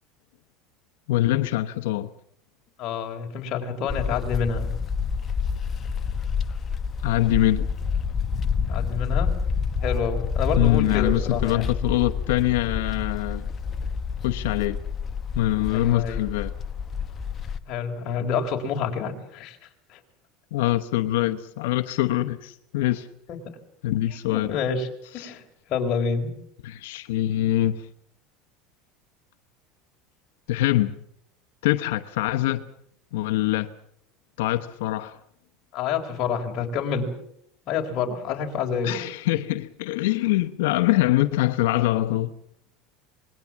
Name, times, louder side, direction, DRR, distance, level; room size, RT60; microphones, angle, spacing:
voice 1, 1.1-2.1 7.0-7.7 10.6-13.5 14.2-14.8 15.3-16.5 20.5-23.1 23.8-24.6 25.2-25.3 26.6-27.9 30.5-31.0 31.6-32.7 33.1-33.7 34.4-35.2 38.8-42.4, left 15 dB, 90° left, 1.0 m, -24 dB
voice 2, 2.8-4.7 8.7-9.3 9.8-11.6 15.7-16.2 17.7-19.6 19.9-20.0 23.3-23.4 24.3-24.9 25.1-26.3 35.7-37.1 37.7-39.0, left 6 dB, 40° left, 3.9 m, -28 dB
sound 1, 3.9-17.6, left 6 dB, 20° left, 1.1 m, -28 dB
26.0 x 21.0 x 7.2 m
cardioid pair, 165°, 0 cm